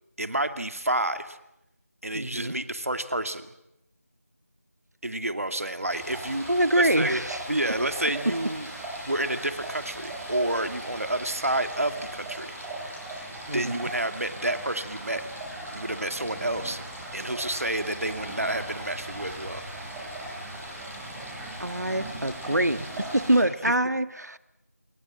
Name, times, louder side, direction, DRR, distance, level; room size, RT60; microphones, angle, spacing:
voice 1, 0.2-1.4 2.0-3.5 5.0-6.5 6.7-7.2 7.5-8.7 9.0-12.5 13.5-15.2 15.7-16.8 17.1-19.6, right 1 dB, 60° right, 8 dB, 2.4 m, -29 dB
voice 2, 2.1-2.5 6.5-7.4 13.5-13.9 21.6-24.4, right 1 dB, 85° right, 12 dB, 1.7 m, -25 dB
Stream, 5.8-23.4, right 1 dB, 5° right, 5.6 m, -38 dB
28.5 x 23.0 x 7.5 m, 0.86 s
figure-of-eight pair, 175°, 9 cm